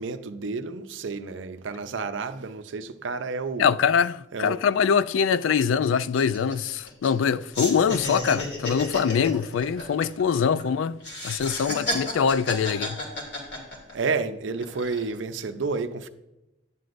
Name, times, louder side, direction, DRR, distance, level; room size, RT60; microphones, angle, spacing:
voice 1, 0.0-3.7 4.3-4.6 13.9-16.1, right 4 dB, 80° right, 0.6 m, -30 dB
voice 2, 3.6-11.0 11.2-13.0, left 7 dB, 90° left, 0.3 m, -23 dB
sound 1, 4.7-4.8 5.1-5.3 5.6-7.3 7.5-10.6 11.0-14.1 14.6-15.2, left 1 dB, 65° left, 2.9 m, -32 dB
11.0 x 9.4 x 2.6 m
head